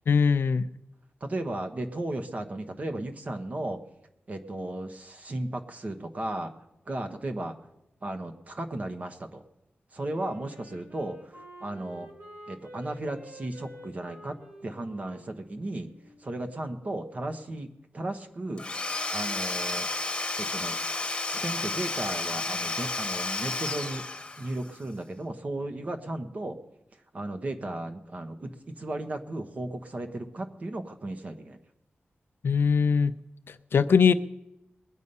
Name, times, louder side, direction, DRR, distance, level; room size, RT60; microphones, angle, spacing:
voice 1, 0.1-0.7 32.4-33.1 33.7-34.1, left 6 dB, 70° left, 13 dB, 0.5 m, -21 dB
voice 2, 1.2-3.8 4.3-6.5 6.9-7.6 8.0-9.4 9.9-11.3 11.6-12.1 12.5-14.4 14.6-15.9 16.2-17.7 17.9-18.6 19.1-19.9 20.4-20.8 21.3-24.0 24.4-26.6 27.1-31.6, right 1 dB, 40° right, 6 dB, 1.1 m, -35 dB
Wind instrument woodwind instrument, 10.0-16.7, equal, 85° right, 3.4 m, -49 dB
Domestic sounds home sounds / Tools, 18.6-24.7, left 3 dB, 25° left, 1.2 m, -32 dB
21.0 x 8.4 x 5.5 m, 0.89 s
wide cardioid pair, 165°, 4 cm